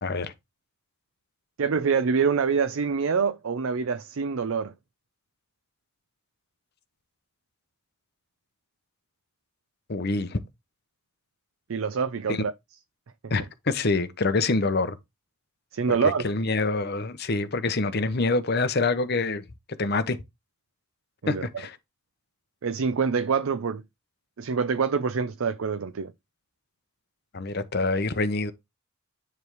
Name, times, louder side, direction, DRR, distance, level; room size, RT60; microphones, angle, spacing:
voice 1, 0.0-0.3 9.9-10.4 12.3-12.5 13.3-15.0 16.2-19.4 19.8-20.2 21.3-21.8 27.3-28.5, left 3 dB, 50° left, 0.8 m, -26 dB
voice 2, 1.6-4.7 11.7-12.5 15.7-16.2 21.2-21.5 22.6-23.8 24.4-26.1, right 5 dB, 80° right, 0.5 m, -25 dB
9.5 x 3.4 x 4.6 m
head